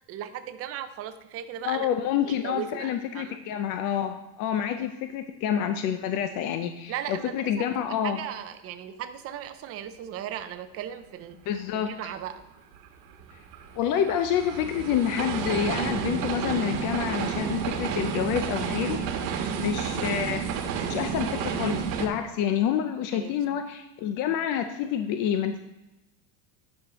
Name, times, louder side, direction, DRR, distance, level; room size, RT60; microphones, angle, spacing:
voice 1, 0.1-1.9 2.2-3.4 6.9-7.7 8.0-12.4 19.4-19.6 23.1-23.6, right 10 dB, 30° right, 9 dB, 0.5 m, -37 dB
voice 2, 1.6-8.2 11.5-11.9 13.8-19.0 19.5-20.4 20.9-25.6, left 9 dB, 40° left, 8 dB, 0.4 m, -28 dB
sound 1, 12.7-22.1, right 6 dB, 80° right, 1.3 m, -30 dB
10.5 x 6.4 x 2.9 m, 0.99 s
supercardioid pair, 140°, 49 cm